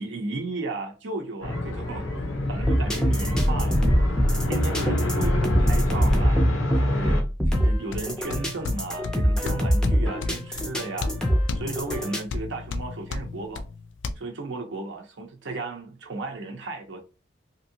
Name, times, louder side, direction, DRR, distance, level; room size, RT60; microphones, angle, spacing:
voice 1, 0.0-2.1 2.5-4.0 4.5-6.4 6.8-11.1 11.5-13.6 14.2-17.0, right 3 dB, 70° right, 0.6 m, -35 dB
sound 1, 1.4-7.2, left 1 dB, 90° left, 0.8 m, -27 dB
sound 2, 2.6-12.2, equal, 5° left, 0.5 m, -24 dB
sound 3, 7.5-14.1, left 3 dB, 75° left, 0.4 m, -33 dB
2.9 x 2.6 x 2.7 m
head